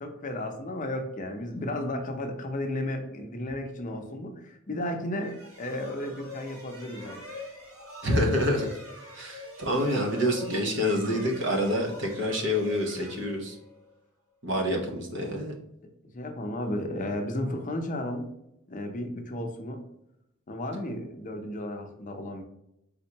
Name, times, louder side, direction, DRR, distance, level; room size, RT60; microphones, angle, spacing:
voice 1, 0.0-7.2 14.5-14.7 15.8-18.3 18.7-19.8 20.5-22.4, left 1 dB, 40° left, 4 dB, 0.6 m, -34 dB
sound 1, 5.1-13.9, left 1 dB, 85° right, 1.3 m, -43 dB
voice 2, 8.0-8.8 9.1-13.6 14.4-15.5, equal, 60° right, 1 dB, 1.0 m, -27 dB
4.4 x 3.6 x 2.8 m, 0.82 s
head